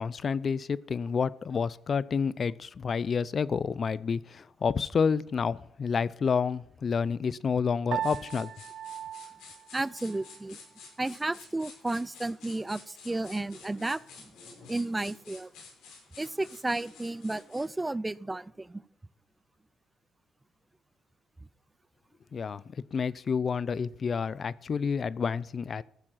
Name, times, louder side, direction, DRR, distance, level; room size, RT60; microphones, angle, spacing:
voice 1, 0.0-8.5 22.3-25.8, left 6 dB, 45° left, 0.6 m, -29 dB
Piano, 7.9-10.4, right 10 dB, 65° right, 0.6 m, -38 dB
sound 1, 8.0-17.8, left 4 dB, 85° left, 6.9 m, -51 dB
voice 2, 9.7-10.6 11.0-14.0 14.7-15.5 16.2-18.8, right 2 dB, 15° right, 0.6 m, -32 dB
14.5 x 7.5 x 5.8 m
cardioid pair, 90°, 0 cm